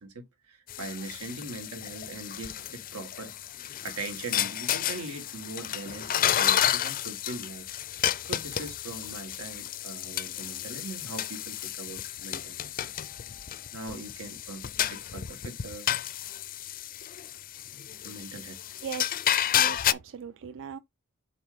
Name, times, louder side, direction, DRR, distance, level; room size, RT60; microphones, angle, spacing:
voice 1, 0.0-7.7 8.3-12.7 13.7-15.9 18.0-18.6, right 3 dB, 90° right, 1.8 m, -41 dB
sound 1, 0.7-19.9, left 11 dB, 40° left, 0.4 m, -31 dB
voice 2, 19.5-20.8, right 7 dB, 60° right, 0.4 m, -38 dB
7.6 x 2.7 x 5.0 m
head